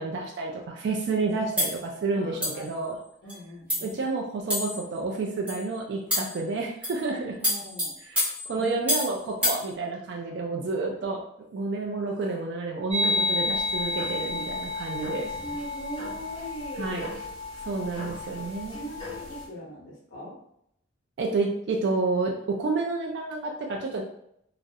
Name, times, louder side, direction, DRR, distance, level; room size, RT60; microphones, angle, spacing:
voice 1, 0.0-3.0 3.8-7.3 8.1-11.2 11.5-15.3 16.8-17.1 17.7-18.8 21.2-24.0, right 3 dB, 60° right, 0 dB, 0.3 m, -30 dB
sound 1, 1.6-1.8 2.4-2.7 3.3-3.4 3.7-3.9 4.5-4.9 5.5-5.6 6.1-6.4 6.8-7.0 7.4-9.1 9.4-9.6, left 1 dB, 10° right, 0.7 m, -28 dB
voice 2, 2.1-3.9 7.1-7.9 8.5-8.9 9.4-9.6 14.2-14.3 15.2-17.1 18.7-20.4, equal, 85° left, -3 dB, 0.7 m, -41 dB
sound 2, 12.9-19.4, left 2 dB, 20° left, 0.8 m, -31 dB
2.4 x 2.0 x 2.6 m, 0.74 s
head